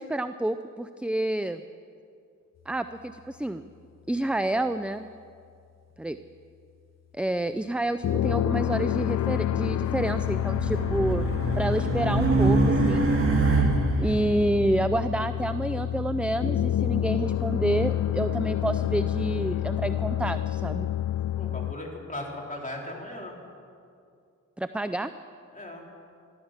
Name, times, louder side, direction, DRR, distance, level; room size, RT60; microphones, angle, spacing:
voice 1, 0.0-1.6 2.7-3.6 4.1-5.1 6.0-6.2 7.1-11.2 11.6-13.1 14.0-20.9 24.6-25.1, right 1 dB, 5° right, 10 dB, 0.4 m, -28 dB
sound 1, 8.0-21.7, left 12 dB, 50° left, 0.4 m, -28 dB
Race car auto racing, 9.8-14.2, right 3 dB, 40° right, 2.1 m, -25 dB
voice 2, 21.4-23.4 25.5-25.8, left 1 dB, 25° left, -1 dB, 3.6 m, -37 dB
15.0 x 12.5 x 7.3 m, 2.3 s
cardioid pair, 70°, 34 cm